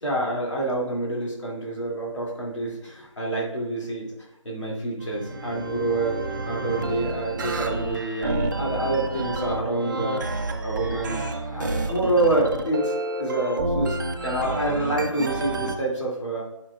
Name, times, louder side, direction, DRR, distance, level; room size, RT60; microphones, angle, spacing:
voice 1, 0.0-4.1 4.4-6.2 6.5-10.2 10.6-11.2 11.5-14.0 14.2-16.4, right 2 dB, 65° left, -3 dB, 2.5 m, -27 dB
sound 1, 5.0-15.8, right 2 dB, 35° right, 0.7 m, -29 dB
10.0 x 6.0 x 2.4 m, 0.84 s
figure-of-eight pair, 160°, 17 cm